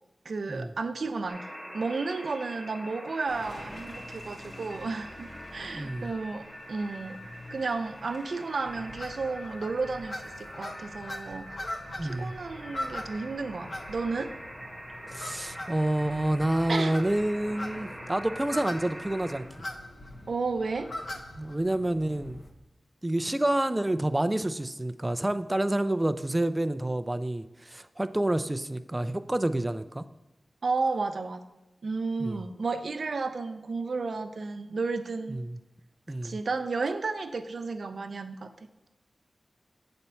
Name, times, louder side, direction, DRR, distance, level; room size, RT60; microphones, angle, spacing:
voice 1, 0.2-1.4 1.7-7.2 7.5-11.5 12.0-14.3 16.7-17.0 20.3-20.9 30.6-31.4 31.8-35.4 36.2-38.9, right 4 dB, 70° right, 9 dB, 0.5 m, -32 dB
sound 1, 1.3-19.4, equal, 5° left, 1.1 m, -44 dB
Car passing by / Engine, 3.3-9.8, left 1 dB, 75° left, 2.1 m, -49 dB
voice 2, 5.7-6.1 12.0-12.3 15.1-19.4 21.4-22.4 23.0-30.0 32.2-32.4 35.3-35.6 36.1-36.4, right 1 dB, 15° right, 11 dB, 0.4 m, -28 dB
sound 2, 8.7-22.5, left 1 dB, 55° left, 0.8 m, -41 dB
8.0 x 4.2 x 5.6 m, 1.0 s
wide cardioid pair, 95°, 0 cm